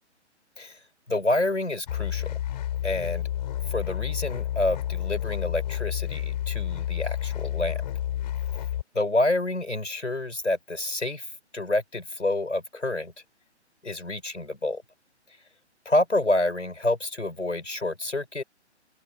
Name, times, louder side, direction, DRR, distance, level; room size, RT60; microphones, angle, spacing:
voice 1, 1.1-2.3 2.8-3.3 3.7-7.8 8.9-11.2 11.5-13.1 13.8-14.8 15.8-18.4, left 2 dB, 85° left, 4.8 m, -28 dB
sound 1, 1.9-8.8, left 12 dB, 40° left, 4.4 m, -30 dB
open air
figure-of-eight pair, 135°, 35 cm